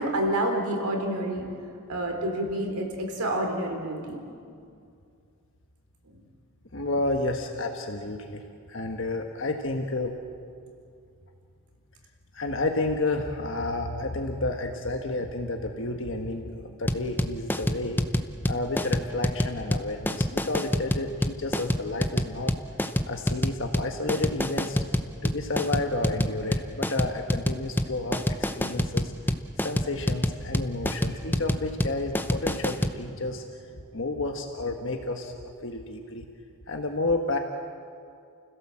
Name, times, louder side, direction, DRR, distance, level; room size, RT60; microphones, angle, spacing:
voice 1, 0.0-1.5 1.9-4.2 6.1-6.2, right 1 dB, 90° right, 2 dB, 3.9 m, -28 dB
voice 2, 6.7-8.4 8.7-10.1 12.3-18.0 18.4-22.5 23.1-24.8 25.2-29.1 29.6-33.4 33.9-36.3 36.7-37.4, left 2 dB, 55° left, 3 dB, 1.5 m, -31 dB
sound 1, 16.9-33.0, left 1 dB, 10° left, 0.8 m, -26 dB
30.0 x 16.5 x 7.6 m, 2.4 s
head